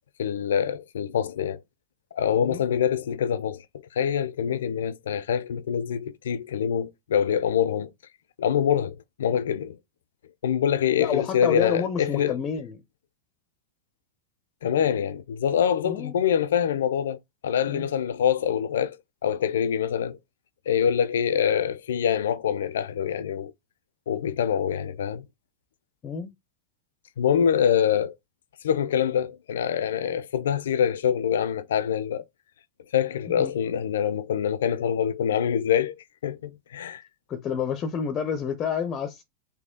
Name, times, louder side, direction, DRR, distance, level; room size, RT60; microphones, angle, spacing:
voice 1, 0.2-1.6 2.1-3.6 3.9-7.9 8.4-9.8 10.4-12.3 14.6-17.2 17.4-19.0 19.2-20.2 20.7-23.5 24.1-25.2 27.2-28.1 28.6-32.2 32.9-36.0 36.2-37.0, left 8 dB, 85° left, 0.5 m, -25 dB
voice 2, 11.0-12.8 15.8-16.1 17.7-17.9 26.0-26.3 33.4-33.5 37.3-39.2, left 7 dB, 30° left, 0.5 m, -29 dB
4.1 x 2.7 x 3.7 m
hypercardioid pair, 120°, 0 cm